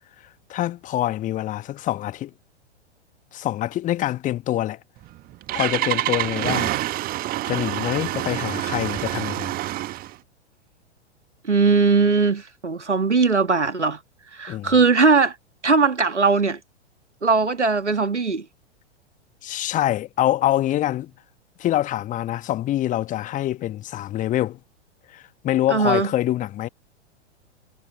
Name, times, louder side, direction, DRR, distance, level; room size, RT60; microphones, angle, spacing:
voice 1, 0.5-2.3 3.3-4.8 5.5-6.8 7.5-9.5 14.5-14.7 19.4-21.1 21.6-24.6 25.1-26.7, left 13 dB, 20° left, 1.3 m, -25 dB
Engine starting, 5.0-10.2, right 15 dB, 25° right, 1.6 m, -27 dB
voice 2, 11.4-14.0 14.3-15.3 15.6-16.6 17.2-18.4 25.7-26.1, right 4 dB, 85° right, 1.5 m, -19 dB
figure-of-eight pair, 100°, 34 cm